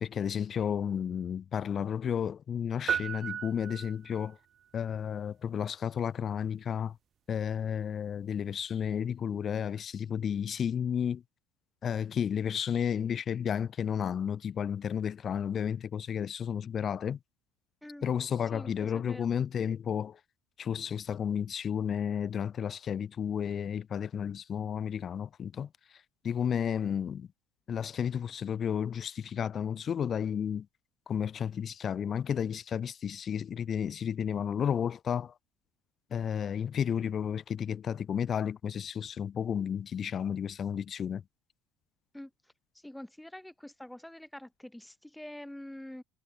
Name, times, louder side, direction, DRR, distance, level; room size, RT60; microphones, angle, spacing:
voice 1, 0.0-4.4 4.7-6.9 7.3-11.2 11.8-17.2 18.0-20.2 20.6-25.7 26.2-27.3 27.7-30.7 31.1-35.3 36.1-41.2, left 8 dB, 40° left, 0.9 m, -32 dB
sound 1, 2.9-4.3, right 9 dB, 40° right, 0.4 m, -34 dB
voice 2, 18.5-19.3 42.1-42.3 42.8-46.0, left 1 dB, 5° left, 4.6 m, -45 dB
supercardioid pair, 105°, 0 cm